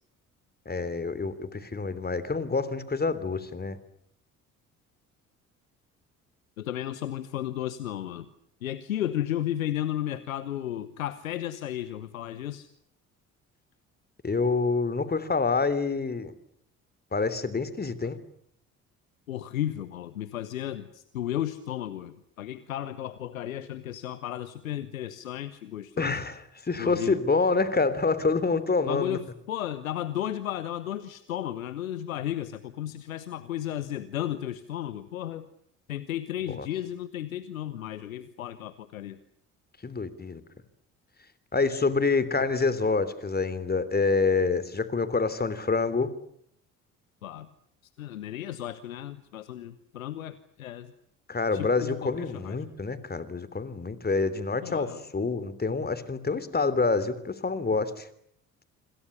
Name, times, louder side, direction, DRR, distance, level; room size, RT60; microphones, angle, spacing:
voice 1, 0.6-3.8 14.2-16.3 17.1-18.2 26.0-29.2 36.5-36.7 39.8-40.4 41.5-46.1 51.3-58.1, left 4 dB, 25° left, 15 dB, 3.3 m, -27 dB
voice 2, 6.6-8.3 8.6-12.7 18.0-18.1 19.3-26.2 26.8-27.2 28.9-35.5 35.9-39.2 47.2-47.5 48.0-50.9 51.5-52.6 54.6-55.0, left 12 dB, 80° left, 15 dB, 1.1 m, -34 dB
26.5 x 26.5 x 6.9 m, 0.69 s
figure-of-eight pair, 50°, 41 cm